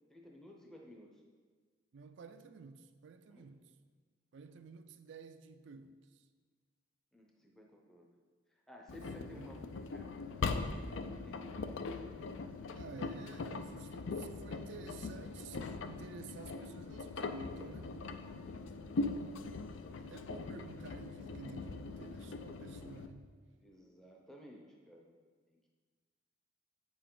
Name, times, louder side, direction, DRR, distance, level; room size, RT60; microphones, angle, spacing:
voice 1, 0.1-1.2 3.3-3.5 7.1-8.1 8.5-11.7 18.5-18.7 19.8-20.1 23.6-25.1 25.5-25.7, left 1 dB, 5° left, 0.6 m, -56 dB
voice 2, 1.9-3.7 4.3-6.3 9.1-9.5 12.7-17.9 20.0-23.4, right 4 dB, 65° right, 0.4 m, -52 dB
Engine, 8.9-23.1, left 3 dB, 75° left, 0.5 m, -41 dB
8.4 x 6.9 x 3.8 m
head